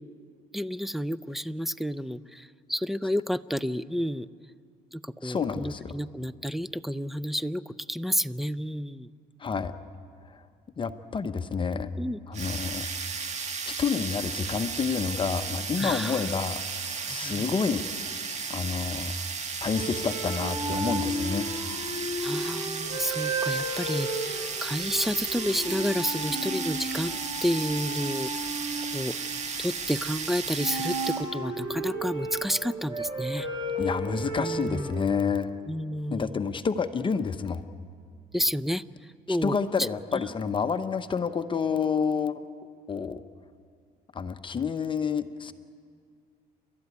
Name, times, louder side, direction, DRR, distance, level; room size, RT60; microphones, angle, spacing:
voice 1, 0.5-4.3 4.9-9.1 12.0-12.2 15.8-16.2 17.1-17.5 22.2-28.3 28.9-29.2 29.6-33.5 34.4-34.9 35.7-36.4 38.3-38.8 39.3-39.9, equal, ahead, 17 dB, 0.5 m, -30 dB
voice 2, 5.2-5.9 9.4-9.7 10.3-10.4 10.8-11.9 12.3-12.9 13.7-16.6 16.8-17.9 18.2-19.1 19.6-21.5 33.8-35.5 36.1-37.6 39.3-42.3 42.9-43.2 44.1-45.5, left 5 dB, 30° left, 10 dB, 0.9 m, -29 dB
sound 1, 12.3-31.3, right 5 dB, 40° right, 1.9 m, -34 dB
sound 2, 19.7-29.9 30.5-34.9, right 1 dB, 25° right, 5.4 m, -33 dB
29.0 x 12.5 x 9.7 m, 2.2 s
cardioid pair, 110°, 17 cm